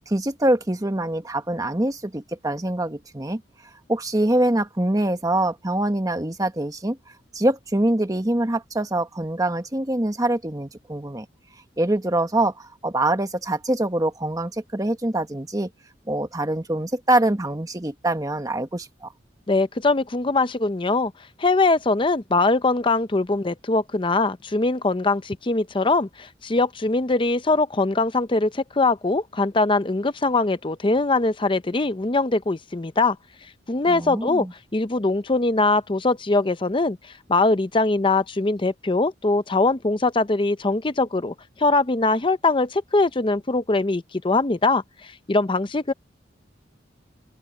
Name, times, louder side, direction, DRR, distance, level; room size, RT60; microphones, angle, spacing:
voice 1, 0.0-3.4 3.9-7.0 7.3-11.2 11.8-15.7 16.1-19.1 33.9-34.5, right 1 dB, 20° right, 1.4 m, -24 dB
voice 2, 19.5-21.1 21.4-33.2 33.7-34.5 34.7-37.0 37.3-45.9, left 3 dB, 25° left, 0.6 m, -22 dB
open air
head